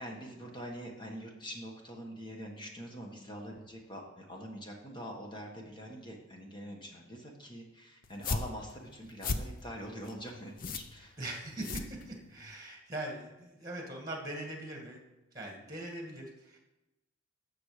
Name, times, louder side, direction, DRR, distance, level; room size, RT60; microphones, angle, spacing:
voice 1, 0.0-11.2, equal, 20° left, 1 dB, 1.6 m, -44 dB
sound 1, 8.0-12.5, left 3 dB, 45° left, 0.7 m, -38 dB
voice 2, 11.2-15.0 15.3-16.6, right 1 dB, 20° right, 1 dB, 2.1 m, -41 dB
12.5 x 7.0 x 5.1 m, 1.0 s
head